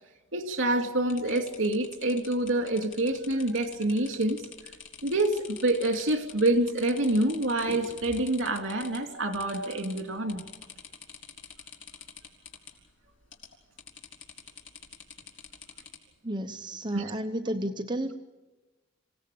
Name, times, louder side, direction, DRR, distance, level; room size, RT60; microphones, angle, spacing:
voice 1, 0.3-4.4 5.0-10.4 16.9-17.1, right 1 dB, 70° right, 2.8 m, -27 dB
sound 1, 1.1-9.0 9.3-10.0 10.3-12.7 13.3-13.5 13.8-16.0, left 7 dB, 75° left, 3.8 m, -46 dB
voice 2, 16.2-18.2, right 1 dB, 25° right, 1.0 m, -32 dB
27.0 x 17.5 x 8.5 m
head